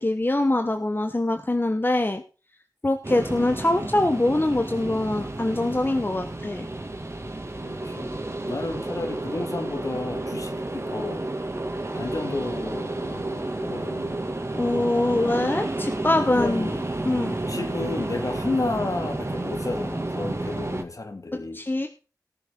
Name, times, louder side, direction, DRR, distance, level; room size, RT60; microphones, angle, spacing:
voice 1, 0.0-2.2 2.8-6.7 14.5-16.7 17.0-17.3 21.3-21.9, left 2 dB, 30° left, 1.2 m, -24 dB
sound 1, 3.0-20.8, right 2 dB, 40° right, 2.4 m, -31 dB
voice 2, 7.6-11.2 11.9-14.2 15.1-15.4 16.3-16.9 17.5-21.6, left 2 dB, 55° left, 2.2 m, -32 dB
18.5 x 7.0 x 3.9 m
wide cardioid pair, 60°, 7 cm